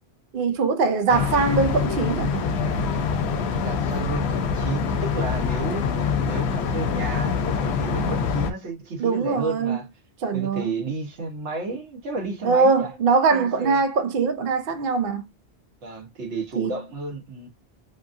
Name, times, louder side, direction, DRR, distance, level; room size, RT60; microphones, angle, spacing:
voice 1, 0.3-2.4 9.0-9.8 10.2-10.7 12.4-15.2 16.6-16.7, right 4 dB, 60° right, 0.7 m, -22 dB
sound 1, 1.1-8.5, left 6 dB, 70° left, 0.8 m, -25 dB
voice 2, 3.6-9.9 10.3-12.9 13.3-13.8 15.8-17.5, right 3 dB, 85° right, 1.3 m, -32 dB
2.9 x 2.5 x 2.5 m
omnidirectional pair, 1.2 m